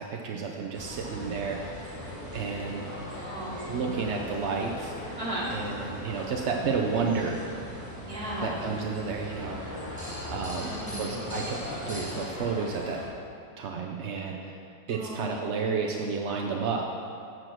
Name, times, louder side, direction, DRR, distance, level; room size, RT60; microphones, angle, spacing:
voice 1, 0.0-1.8 2.3-2.8 3.7-4.9 5.5-7.4 8.4-9.6 10.0-11.6 11.9-13.0 13.6-14.6 14.9-16.9, right 5 dB, 70° right, 1 dB, 0.6 m, -31 dB
sound 1, 0.7-13.1, left 1 dB, 10° left, 1.2 m, -39 dB
voice 2, 3.2-4.0 5.2-5.5 8.1-8.6 10.6-11.3 14.9-15.3, right 1 dB, 20° right, -5 dB, 1.8 m, -36 dB
7.6 x 6.4 x 6.1 m, 2.5 s
omnidirectional pair, 1.9 m